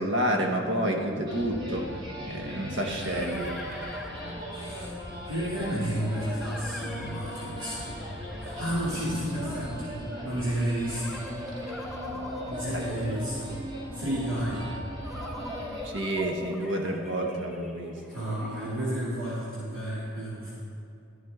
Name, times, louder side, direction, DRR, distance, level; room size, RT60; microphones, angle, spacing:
voice 1, 0.0-1.9 2.3-3.6 12.7-12.8 15.8-18.0, right 1 dB, 60° right, 2 dB, 1.1 m, -29 dB
sound 1, 1.1-1.2 2.5-4.9 6.1-9.6 10.8-13.9 15.0-19.3, left 1 dB, ahead, 0.7 m, -42 dB
sound 2, 1.3-15.9, equal, 25° right, 1.8 m, -38 dB
voice 2, 2.7-3.7 4.5-4.9 5.3-7.9 8.4-10.0 10.2-11.2 12.5-13.6 13.9-14.7 18.1-20.5, right 1 dB, 85° right, -8 dB, 2.5 m, -32 dB
12.0 x 11.0 x 3.6 m, 2.6 s
head